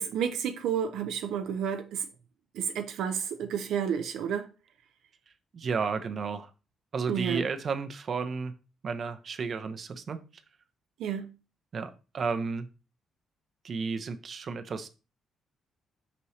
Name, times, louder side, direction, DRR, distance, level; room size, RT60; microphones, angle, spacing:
voice 1, 0.0-2.1 2.5-4.5 7.1-7.5 11.0-11.3, right 8 dB, 80° right, 0.6 m, -31 dB
voice 2, 5.5-6.5 6.9-8.5 8.8-10.2 11.7-12.6 13.6-14.9, right 5 dB, 50° right, 0.7 m, -32 dB
5.7 x 5.3 x 3.2 m
cardioid pair, 90°, 0 cm